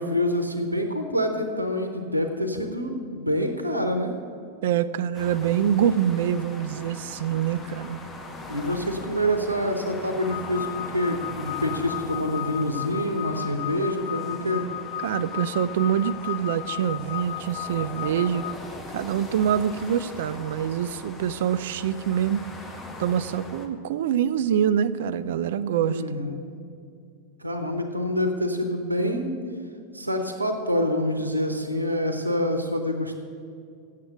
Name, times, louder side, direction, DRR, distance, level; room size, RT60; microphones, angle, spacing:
voice 1, 0.0-4.1 8.5-14.6 17.7-17.8 25.8-26.4 27.4-29.4 29.9-33.2, equal, 85° right, 6 dB, 0.8 m, -26 dB
voice 2, 4.6-8.0 15.0-18.4 18.9-22.4 23.0-26.0, right 9 dB, 55° right, 15 dB, 0.4 m, -25 dB
sound 1, 5.1-23.7, left 2 dB, 20° left, 1.0 m, -41 dB
sound 2, 10.2-18.5, left 15 dB, 55° left, 0.4 m, -35 dB
7.8 x 7.4 x 7.8 m, 2.4 s
figure-of-eight pair, 90°, 0 cm